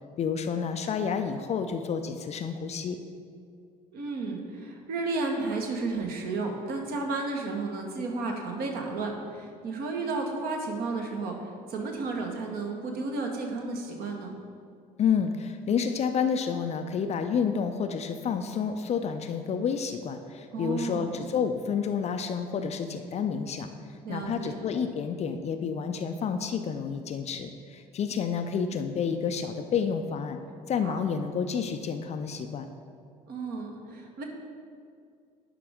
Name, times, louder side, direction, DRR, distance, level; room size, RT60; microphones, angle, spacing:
voice 1, 0.2-3.0 15.0-23.7 24.1-30.4 30.7-32.7, left 6 dB, 35° left, 7 dB, 0.5 m, -29 dB
voice 2, 3.9-14.3 20.5-21.1 24.0-24.6 30.8-31.0 33.3-34.2, right 3 dB, 50° right, 2 dB, 1.2 m, -32 dB
11.0 x 5.0 x 3.5 m, 2.3 s
figure-of-eight pair, 55°, 20 cm